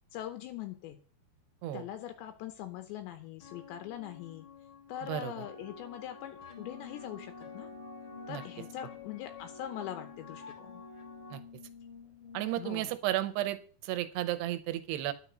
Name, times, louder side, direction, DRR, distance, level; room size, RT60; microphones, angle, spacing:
voice 1, 0.1-1.0 1.7-4.5 4.9-7.7 8.3-10.8 12.6-13.0, left 11 dB, 80° left, 7 dB, 3.1 m, -42 dB
sound 1, 3.4-11.4, left 3 dB, 55° left, 1.4 m, -50 dB
voice 2, 5.0-5.3 8.3-8.4 11.3-11.4 12.3-15.1, right 14 dB, 75° right, 11 dB, 2.7 m, -33 dB
Brass instrument, 6.5-12.9, left 7 dB, 15° left, 1.7 m, -51 dB
10.5 x 6.8 x 6.1 m, 0.40 s
omnidirectional pair, 5.2 m